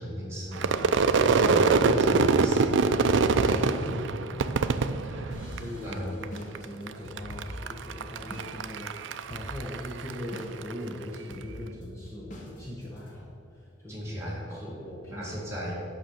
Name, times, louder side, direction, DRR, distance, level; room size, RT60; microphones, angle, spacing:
voice 1, 0.0-2.7 3.4-3.9 4.3-4.5 4.9-5.4 5.8-6.1 13.9-14.7 15.1-15.9, equal, 15° right, -6 dB, 2.2 m, -36 dB
Crowd / Fireworks, 0.5-5.9 6.2-6.9 7.2-10.7, right 4 dB, 70° right, 0.4 m, -24 dB
voice 2, 3.4-3.9 4.8-15.6, left 1 dB, 15° left, -6 dB, 1.2 m, -41 dB
sound 1, 5.3-8.6 8.8-8.9 9.3-9.8 10.3-10.8 11.3-13.1, left 1 dB, 40° left, 1.6 m, -43 dB
8.9 x 6.1 x 6.4 m, 2.6 s
head